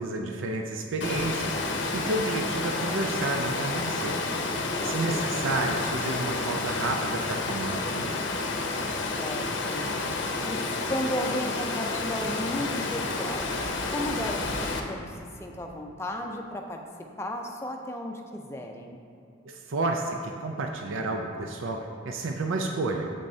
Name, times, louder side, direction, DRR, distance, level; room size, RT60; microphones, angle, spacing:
voice 1, 0.0-4.2 4.8-8.2 19.5-23.1, right 2 dB, 80° right, 3 dB, 0.5 m, -31 dB
Water, 1.0-14.8, left 3 dB, 65° left, 0.7 m, -30 dB
voice 2, 4.8-5.3 9.2-9.9 10.4-13.5 13.9-16.8 17.2-19.0, left 1 dB, 15° left, 2 dB, 0.5 m, -34 dB
8.6 x 7.7 x 2.7 m, 2.4 s
head